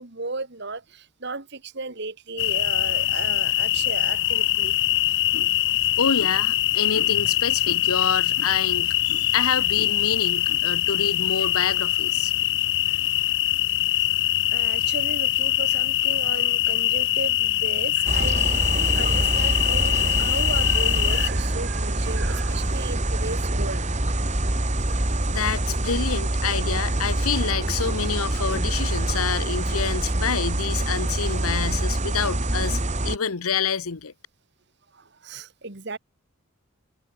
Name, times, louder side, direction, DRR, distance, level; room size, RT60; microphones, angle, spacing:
voice 1, 0.0-4.8 13.9-14.1 14.5-24.8 28.3-28.4 34.9-36.0, right 3 dB, 50° right, 1.9 m, -35 dB
sound 1, 2.4-21.3, left 14 dB, 55° left, 1.2 m, -23 dB
voice 2, 6.0-12.3 25.3-32.8 33.0-34.1, left 6 dB, 90° left, 1.0 m, -27 dB
sound 2, 18.1-33.2, right 1 dB, 30° right, 2.7 m, -25 dB
head